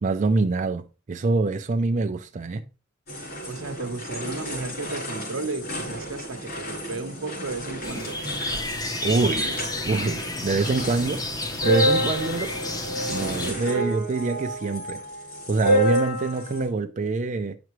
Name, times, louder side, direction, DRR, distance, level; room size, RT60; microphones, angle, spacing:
voice 1, 0.0-2.6 9.0-9.6 9.9-11.2 11.6-12.5 13.1-15.0 15.5-17.6, right 3 dB, 40° right, 0.4 m, -25 dB
sound 1, 3.1-16.7, right 1 dB, 50° left, 3.8 m, -29 dB
voice 2, 3.5-8.2 12.1-12.2 13.5-13.7, right 3 dB, 80° right, 0.9 m, -34 dB
sound 2, 7.8-13.5, left 2 dB, 20° left, 0.8 m, -30 dB
9.0 x 5.9 x 3.1 m
head